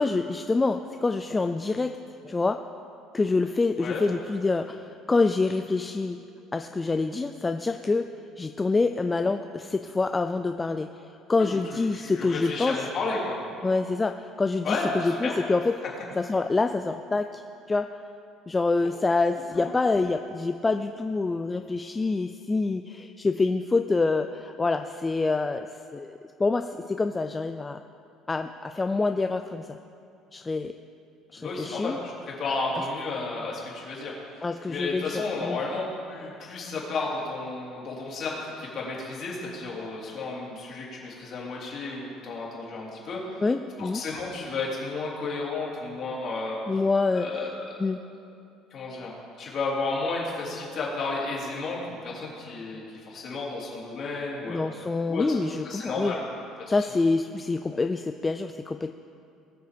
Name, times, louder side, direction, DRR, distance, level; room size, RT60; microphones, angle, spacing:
voice 1, 0.0-2.0 2.2-2.6 3.1-6.2 6.5-8.0 8.4-10.9 11.3-12.8 13.6-15.7 16.2-17.4 17.7-17.9 18.5-25.7 25.9-27.8 28.3-29.8 30.3-30.7 31.3-32.0 34.4-35.6 43.4-44.0 46.7-47.3 47.8-48.0 54.5-56.1 56.7-58.9, left 3 dB, 15° left, 7 dB, 0.3 m, -26 dB
voice 2, 11.4-13.4 14.6-15.4 19.5-19.7 31.3-43.4 43.8-46.6 47.1-47.9 48.7-49.1 49.4-54.6 55.1-55.4 55.6-56.2 56.7-56.8, left 3 dB, 40° left, -4 dB, 3.3 m, -32 dB
20.0 x 6.6 x 5.1 m, 2.6 s
cardioid pair, 150°, 0 cm